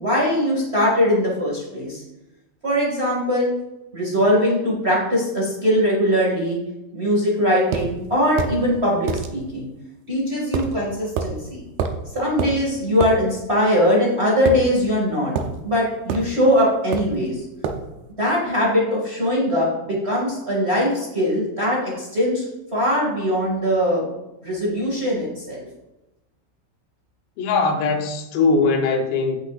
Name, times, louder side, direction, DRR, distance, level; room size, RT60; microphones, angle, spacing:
voice 1, 0.0-2.0 2.6-3.5 3.9-6.6 6.9-9.7 10.1-11.6 12.1-15.3 15.6-17.4 18.2-22.4 22.7-24.0 24.4-25.6, equal, 45° right, -4 dB, 0.8 m, -21 dB
sound 1, 7.7-7.9 8.4-8.6 9.1-9.3 10.5-10.7 11.2-11.3 11.8-12.0 12.4-12.6 13.0-13.2 14.4-15.0 15.3-15.5 16.1-16.3 16.9-17.2 17.6-17.8, right 6 dB, 80° right, 2.2 m, -25 dB
voice 2, 27.4-29.4, left 4 dB, 75° left, 3 dB, 3.1 m, -20 dB
16.5 x 6.3 x 2.5 m, 0.98 s
omnidirectional pair, 5.4 m